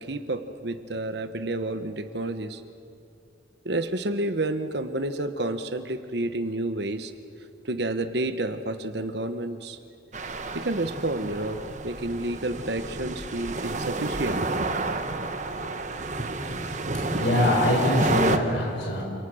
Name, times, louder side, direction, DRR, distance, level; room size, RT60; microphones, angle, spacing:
voice 1, 0.0-2.6 3.6-7.1 7.6-9.8 10.5-14.7, right 2 dB, 60° right, 9 dB, 1.2 m, -30 dB
sound 1, 10.1-18.4, right 2 dB, 40° right, 1.4 m, -30 dB
voice 2, 16.9-19.0, left 1 dB, 70° left, 0 dB, 5.0 m, -24 dB
29.0 x 27.5 x 6.4 m, 2.5 s
head